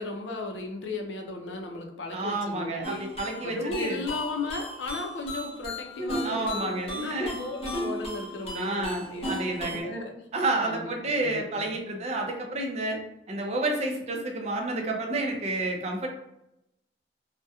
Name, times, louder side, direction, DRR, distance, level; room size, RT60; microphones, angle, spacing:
voice 1, 0.0-3.0 3.4-10.3 10.6-11.7, left 3 dB, 80° left, 3 dB, 0.5 m, -36 dB
voice 2, 2.1-4.0 6.0-7.4 8.5-9.9 10.3-13.0 13.3-16.1, right 2 dB, 35° right, 1 dB, 0.4 m, -30 dB
sound 1, 2.8-9.8, equal, 35° left, 0.6 m, -36 dB
2.7 x 2.1 x 2.3 m, 0.83 s
head